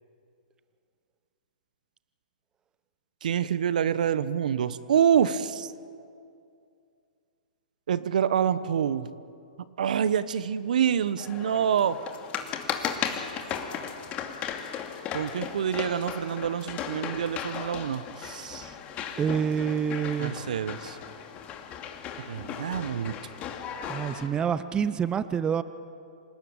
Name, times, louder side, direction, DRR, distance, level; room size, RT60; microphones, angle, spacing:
voice 1, 3.2-5.7 7.9-9.1 9.8-12.0 15.1-18.7 20.2-21.0 22.2-23.1, right 8 dB, 65° right, 15 dB, 1.1 m, -27 dB
sound 1, 11.2-24.3, left 8 dB, 30° left, 2.5 m, -36 dB
voice 2, 19.2-20.4 23.9-25.6, right 7 dB, 20° right, 14 dB, 0.8 m, -27 dB
27.0 x 18.5 x 9.0 m, 2.4 s
hypercardioid pair, 120°, 4 cm